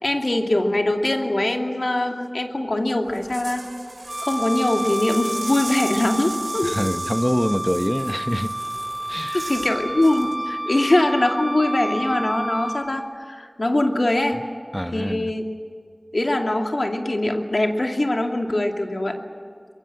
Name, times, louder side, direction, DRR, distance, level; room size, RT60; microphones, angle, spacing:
voice 1, 0.0-3.6 4.2-6.7 9.3-14.4 14.9-15.4 16.1-19.2, left 1 dB, 80° left, 3 dB, 2.5 m, -22 dB
sound 1, 3.1-9.7 10.0-10.3, right 2 dB, 80° right, 6.2 m, -37 dB
Wind instrument woodwind instrument, 4.1-12.9, right 1 dB, 45° right, 1.9 m, -30 dB
voice 2, 6.6-8.5 9.1-9.5 14.7-15.3, equal, 10° left, 11 dB, 1.0 m, -25 dB
24.5 x 22.0 x 7.8 m, 2.2 s
wide cardioid pair, 40°, 0 cm